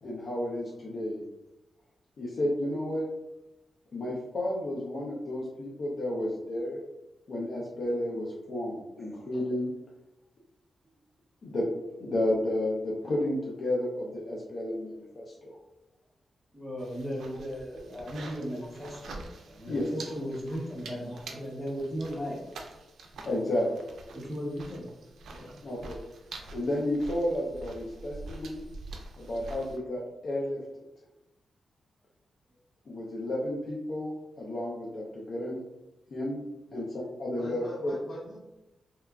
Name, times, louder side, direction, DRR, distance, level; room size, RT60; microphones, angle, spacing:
voice 1, 0.0-1.2 2.2-3.1 3.9-6.8 7.3-9.7 11.4-11.7 12.0-15.5 19.7-19.9 23.3-23.6 25.6-26.0 26.5-28.6 29.2-30.6 32.9-35.6 36.1-36.9 37.2-37.9, left 1 dB, 55° left, -4 dB, 0.4 m, -32 dB
voice 2, 16.5-22.9 24.1-24.9 25.3-25.5, equal, 5° right, -4 dB, 0.7 m, -37 dB
sound 1, 16.8-29.8, right 3 dB, 90° right, 0.3 m, -46 dB
voice 3, 37.3-38.4, left 1 dB, 85° left, -3 dB, 0.8 m, -43 dB
2.9 x 2.3 x 2.2 m, 0.97 s
wide cardioid pair, 145°, 0 cm